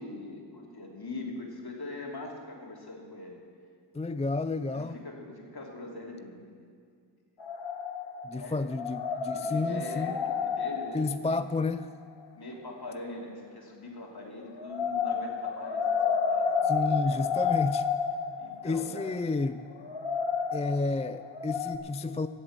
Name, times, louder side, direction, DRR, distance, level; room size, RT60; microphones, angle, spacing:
voice 1, 0.0-3.4 4.7-6.7 8.3-8.7 9.3-11.0 11.3-11.4 12.4-16.0 16.3-17.3 18.4-19.1, left 2 dB, 55° left, -1 dB, 2.9 m, -42 dB
voice 2, 3.9-5.0 8.2-10.2 10.9-11.9 16.6-17.9 18.6-19.6 20.5-22.3, left 3 dB, 15° left, 12 dB, 0.4 m, -31 dB
sound 1, 7.4-8.4 8.7-11.8 14.5-21.8, left 6 dB, 70° left, 1.3 m, -31 dB
17.0 x 7.6 x 7.6 m, 2.1 s
cardioid pair, 45°, 46 cm